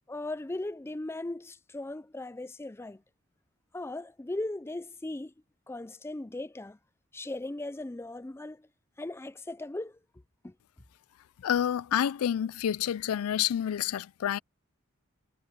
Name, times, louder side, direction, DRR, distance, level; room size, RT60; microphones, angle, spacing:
voice 1, 0.1-3.0 3.7-5.3 5.7-6.8 7.1-8.7 9.0-10.0 10.4-10.5, left 2 dB, 10° left, 0.4 m, -38 dB
voice 2, 11.4-14.4, left 9 dB, 85° left, 0.4 m, -28 dB
head